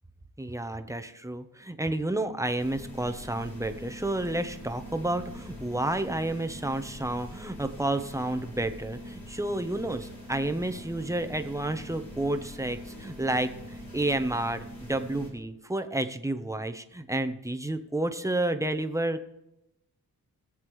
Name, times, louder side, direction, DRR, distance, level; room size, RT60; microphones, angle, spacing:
voice 1, 0.4-19.3, right 1 dB, 10° right, 8 dB, 0.9 m, -30 dB
sound 1, 2.6-15.3, equal, 70° left, 4.0 m, -43 dB
21.5 x 7.4 x 3.2 m, 0.89 s
cardioid pair, 70°, 37 cm